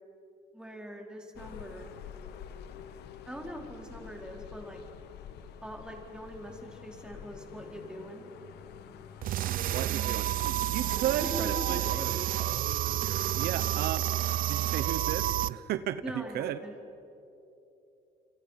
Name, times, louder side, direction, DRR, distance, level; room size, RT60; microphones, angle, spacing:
voice 1, 0.5-1.9 3.2-4.8 5.6-8.3 10.9-12.2 16.0-16.8, equal, 5° right, 1 dB, 4.3 m, -42 dB
sound 1, 1.3-11.0, left 8 dB, 75° left, 1.4 m, -48 dB
sound 2, 9.2-15.5, right 13 dB, 55° right, 0.5 m, -30 dB
voice 2, 9.7-10.3 10.7-11.8 13.4-14.1 14.5-16.6, right 12 dB, 70° right, 13 dB, 0.9 m, -34 dB
29.0 x 26.0 x 5.8 m, 2.9 s
cardioid pair, 110°, 17 cm